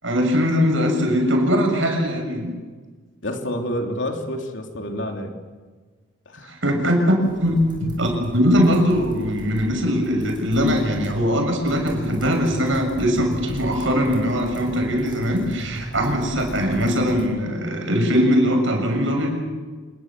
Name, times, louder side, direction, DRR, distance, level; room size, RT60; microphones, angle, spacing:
voice 1, 0.0-2.5 6.5-19.3, equal, 65° right, 3 dB, 7.0 m, -21 dB
voice 2, 3.2-5.3 6.2-6.5, equal, 60° left, 3 dB, 3.4 m, -28 dB
sound 1, 7.2-17.2, equal, 20° right, 6.3 m, -37 dB
27.5 x 21.5 x 7.6 m, 1.4 s
head